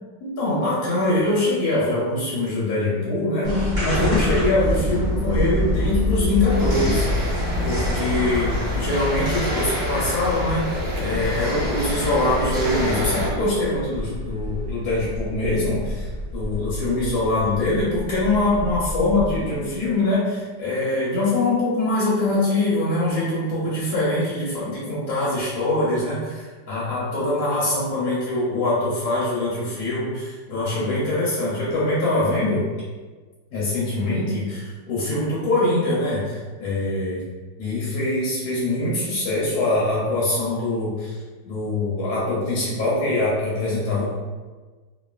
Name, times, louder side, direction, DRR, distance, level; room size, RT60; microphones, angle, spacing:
voice 1, 0.2-32.6 33.5-37.2 37.6-41.2 41.5-44.1, left 2 dB, 65° left, -7 dB, 1.1 m, -23 dB
sound 1, 3.4-19.6, left 1 dB, 30° right, 0.7 m, -27 dB
sound 2, 6.5-13.3, left 1 dB, 65° right, 1.1 m, -27 dB
3.0 x 2.4 x 2.3 m, 1.4 s
omnidirectional pair, 2.0 m